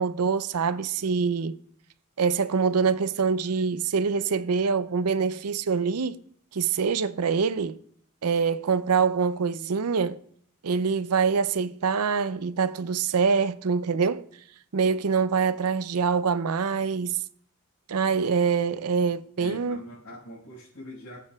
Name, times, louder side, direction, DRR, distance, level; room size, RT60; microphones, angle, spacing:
voice 1, 0.0-1.6 2.2-6.2 6.5-7.8 8.2-10.2 10.6-14.3 14.7-17.2 17.9-19.8, right 5 dB, 85° right, 0.5 m, -25 dB
voice 2, 19.4-21.2, left 1 dB, 70° left, 5.0 m, -43 dB
20.5 x 8.4 x 2.3 m
head